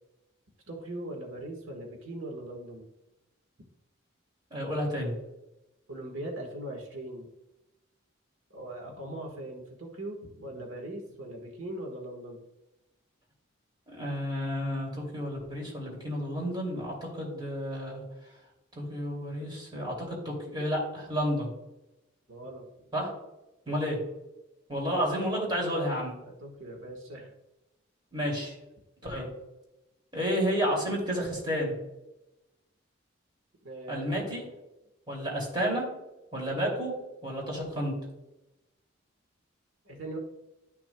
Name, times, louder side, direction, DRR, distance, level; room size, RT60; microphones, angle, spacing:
voice 1, 0.7-2.9 5.9-7.3 8.5-12.4 22.3-22.7 23.7-24.0 26.2-27.3 29.0-29.2 33.6-34.5 39.8-40.2, right 1 dB, 80° right, 1 dB, 1.5 m, -40 dB
voice 2, 4.5-5.1 13.9-18.0 18.7-21.5 22.9-23.1 23.7-24.0 24.7-26.2 28.1-28.5 29.0-29.3 30.1-31.8 33.9-34.5 35.1-35.8 36.3-36.9 37.2-38.0, equal, 25° right, -2 dB, 2.7 m, -31 dB
12.0 x 6.1 x 2.3 m, 0.94 s
head